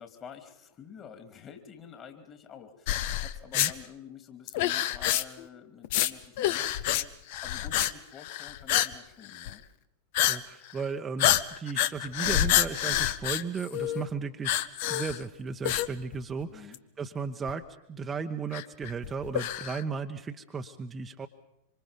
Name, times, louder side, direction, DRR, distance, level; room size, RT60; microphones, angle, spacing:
voice 1, 0.0-9.6 16.5-16.8, left 7 dB, 30° left, 7 dB, 3.0 m, -48 dB
sound 1, 2.9-3.7 4.5-5.4 5.8-6.1 6.4-7.0 7.3-7.9 8.2-8.9 9.3-9.5 10.1-10.4 10.7-10.8 11.2-14.0 14.4-15.2 15.6-16.4 16.7-16.8 17.5-17.6 18.5-19.8, left 13 dB, 50° left, 0.9 m, -27 dB
voice 2, 10.3-14.6 14.9-21.3, right 5 dB, 20° right, 5 dB, 1.1 m, -35 dB
26.0 x 25.5 x 5.4 m, 0.81 s
figure-of-eight pair, 90°, 0 cm